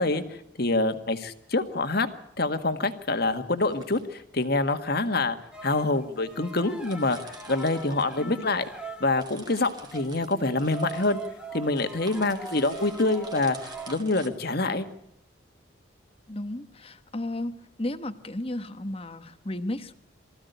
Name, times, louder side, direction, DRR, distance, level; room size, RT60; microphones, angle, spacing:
voice 1, 0.0-2.1 2.4-5.4 5.6-8.7 9.0-11.2 11.5-14.9, left 2 dB, 50° left, 8 dB, 1.7 m, -26 dB
sound 1, 1.4-1.7 3.5-4.2 5.0-5.1 5.9-6.0 6.2-6.3 6.5-8.7 9.0-14.3, right 3 dB, 20° right, 2.6 m, -48 dB
sound 2, 5.5-9.3 9.7-14.0, right 3 dB, 5° right, 1.9 m, -42 dB
voice 2, 8.2-8.5 16.3-20.0, left 1 dB, 30° left, 11 dB, 1.2 m, -34 dB
24.0 x 15.0 x 8.1 m, 0.81 s
head